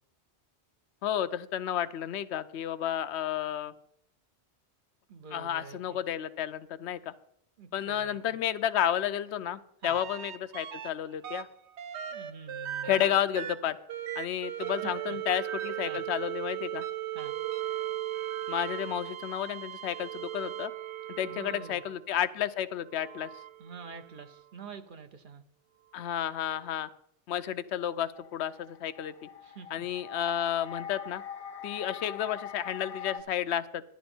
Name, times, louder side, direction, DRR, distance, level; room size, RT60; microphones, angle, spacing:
voice 1, 1.0-3.7 5.3-7.1 7.7-11.5 12.8-13.8 14.2-16.9 18.5-20.7 21.1-23.3 25.9-26.9 27.3-29.3 29.7-31.2 31.6-33.8, left 10 dB, 80° left, 13 dB, 0.9 m, -31 dB
voice 2, 5.1-6.0 7.6-8.4 9.8-10.0 12.1-13.1 14.8-15.2 15.8-16.0 17.1-17.3 21.2-21.8 23.6-25.4 29.4-29.9, right 5 dB, 50° right, 9 dB, 1.0 m, -46 dB
sound 1, 9.8-10.9 11.2-22.0 22.9-24.4 26.1-26.2, right 11 dB, 80° right, 1.0 m, -37 dB
sound 2, 28.2-33.2, left 7 dB, 45° left, 0.5 m, -43 dB
11.5 x 11.0 x 4.4 m, 0.71 s
omnidirectional pair, 1.1 m